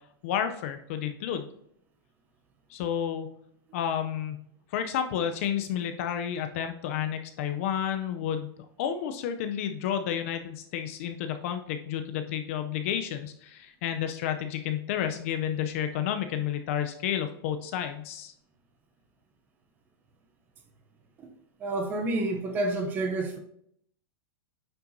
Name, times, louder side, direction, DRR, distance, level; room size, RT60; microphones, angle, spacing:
voice 1, 0.2-1.5 2.7-3.3 3.7-4.4 4.7-8.5 8.8-18.3, left 9 dB, 35° left, 8 dB, 0.4 m, -31 dB
voice 2, 21.6-23.4, right 2 dB, 15° right, 5 dB, 0.6 m, -29 dB
8.9 x 5.6 x 2.6 m, 0.70 s
supercardioid pair, 175°, 13 cm